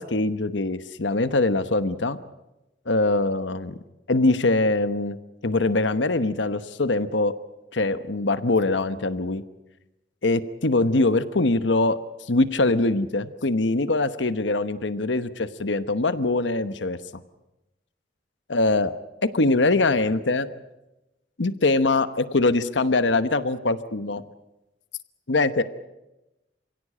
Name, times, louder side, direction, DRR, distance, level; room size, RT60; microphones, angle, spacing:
voice 1, 0.0-2.2 2.9-3.8 4.1-5.2 5.4-7.3 7.7-9.4 10.2-17.0 18.5-18.9 19.3-20.5 21.4-24.2 25.3-25.6, left 2 dB, 90° left, 12 dB, 1.1 m, -23 dB
28.0 x 16.5 x 8.6 m, 0.98 s
head